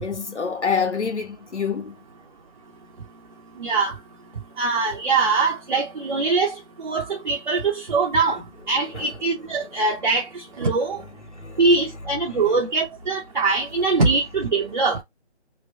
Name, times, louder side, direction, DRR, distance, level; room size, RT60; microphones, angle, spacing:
voice 1, 0.0-2.0 8.9-9.1 11.3-11.6 12.3-12.4, left 6 dB, 85° left, 1.2 m, -27 dB
voice 2, 3.6-3.9 4.6-8.4 8.7-11.0 11.6-15.0, right 4 dB, 45° right, 0.8 m, -22 dB
3.2 x 2.1 x 3.6 m
figure-of-eight pair, 160°, 34 cm